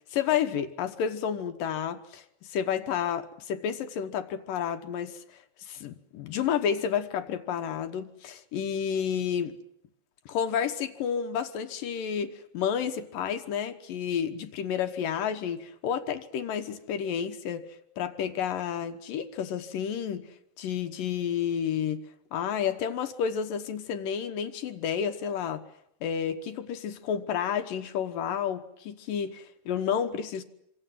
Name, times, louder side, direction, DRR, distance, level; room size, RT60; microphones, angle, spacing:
voice 1, 0.1-9.6 10.3-20.3 20.6-22.0 22.3-25.6 26.0-30.4, left 8 dB, 65° left, 7 dB, 2.3 m, -31 dB
27.0 x 25.0 x 7.5 m, 0.79 s
omnidirectional pair, 5.4 m